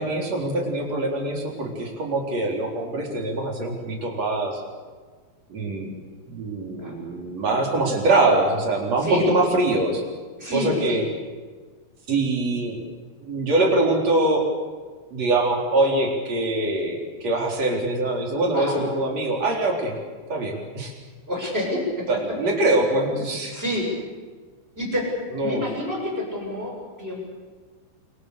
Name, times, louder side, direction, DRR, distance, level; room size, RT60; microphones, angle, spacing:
voice 1, 0.0-4.6 5.5-5.9 6.3-10.0 10.5-11.0 12.1-12.8 13.2-14.4 15.1-19.9 20.3-20.9 22.1-23.5 25.3-25.7, right 2 dB, 35° right, 0 dB, 4.5 m, -23 dB
voice 2, 10.4-11.0 18.5-18.8 21.3-22.1 23.5-23.9 24.7-25.1 25.4-27.3, left 1 dB, 10° right, -1 dB, 6.5 m, -28 dB
27.5 x 24.5 x 6.8 m, 1.5 s
omnidirectional pair, 5.7 m